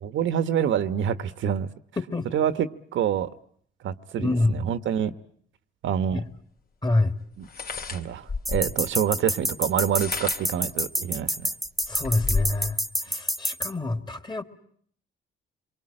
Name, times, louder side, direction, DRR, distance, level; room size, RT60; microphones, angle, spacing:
voice 1, 0.0-1.7 2.3-2.7 2.9-3.3 3.8-5.1 5.8-6.2 7.4-7.5 7.9-11.5, right 9 dB, 75° right, 1.2 m, -26 dB
voice 2, 2.0-2.3 4.2-4.7 6.1-6.2 6.8-7.1 11.9-14.4, left 2 dB, 20° left, 2.3 m, -26 dB
sound 1, 6.1-6.2 7.4-8.8 9.7-10.6 11.2-11.3 11.6-12.7, left 4 dB, 50° left, 2.9 m, -32 dB
sound 2, 8.5-13.7, equal, ahead, 1.5 m, -27 dB
27.0 x 23.0 x 8.8 m
cardioid pair, 90°, 20 cm